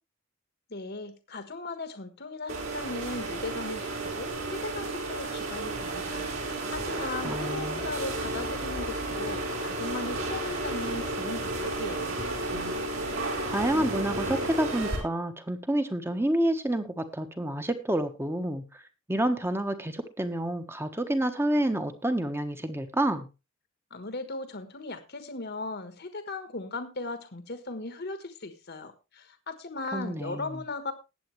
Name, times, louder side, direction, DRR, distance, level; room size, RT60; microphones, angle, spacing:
voice 1, 0.7-12.2 23.9-30.9, left 2 dB, 45° left, 9 dB, 1.4 m, -38 dB
sound 1, 2.5-15.0, right 2 dB, 60° right, 5.0 m, -32 dB
voice 2, 7.2-7.8 13.4-18.8 19.1-23.3 29.9-30.5, right 1 dB, 10° right, 8 dB, 1.3 m, -29 dB
20.0 x 8.2 x 3.2 m, 0.27 s
head